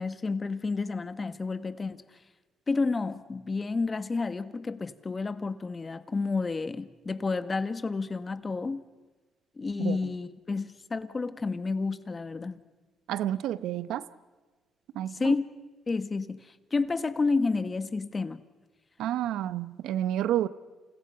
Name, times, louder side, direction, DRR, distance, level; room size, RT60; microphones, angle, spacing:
voice 1, 0.0-2.0 2.7-8.8 9.6-12.6 15.1-15.4 15.9-18.4, left 4 dB, 30° left, 1.4 m, -30 dB
voice 2, 13.1-14.0 14.9-15.3 19.0-20.5, right 12 dB, 85° right, 0.8 m, -29 dB
29.5 x 28.5 x 5.7 m
cardioid pair, 90°, 0 cm